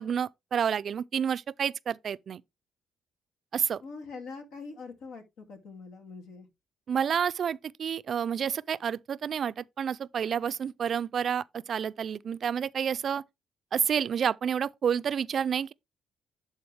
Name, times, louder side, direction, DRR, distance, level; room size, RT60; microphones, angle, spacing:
voice 1, 0.0-2.4 3.5-3.8 6.9-13.2 13.7-15.7, right 8 dB, 55° right, 0.4 m, -29 dB
voice 2, 3.8-6.5, left 4 dB, 85° left, 2.5 m, -43 dB
11.5 x 3.9 x 3.4 m
cardioid pair, 90°, 0 cm